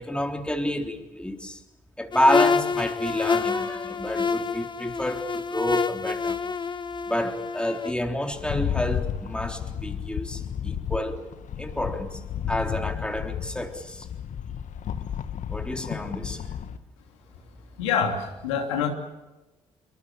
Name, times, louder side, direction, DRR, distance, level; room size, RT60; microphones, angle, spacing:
voice 1, 0.0-1.6 2.0-6.4 7.1-11.2 11.6-12.2 12.5-14.1 15.5-16.4, left 1 dB, 5° left, 3.8 m, -29 dB
sound 1, 2.1-7.9, left 5 dB, 30° left, 1.6 m, -27 dB
Rattle, 8.3-16.8, left 9 dB, 55° left, 1.5 m, -32 dB
voice 2, 17.8-18.9, left 7 dB, 80° left, 3.1 m, -26 dB
26.0 x 24.0 x 7.4 m
hypercardioid pair, 50°, 15 cm